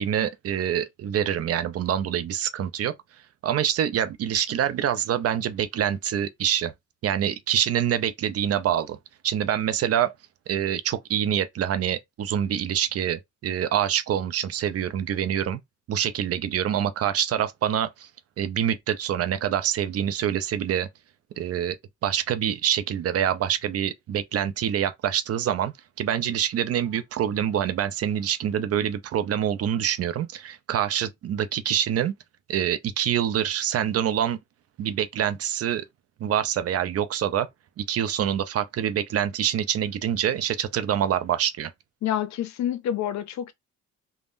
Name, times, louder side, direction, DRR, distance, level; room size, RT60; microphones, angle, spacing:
voice 1, 0.0-2.9 3.4-6.7 7.0-9.0 9.2-10.1 10.5-15.6 15.9-18.1 18.4-20.9 21.4-21.8 22.0-32.1 32.5-34.4 34.8-35.8 36.2-37.5 37.8-41.7, right 10 dB, 55° right, 0.5 m, -26 dB
voice 2, 42.0-43.5, left 10 dB, 65° left, 0.5 m, -28 dB
3.5 x 2.0 x 2.5 m
cardioid pair, 90°, 30 cm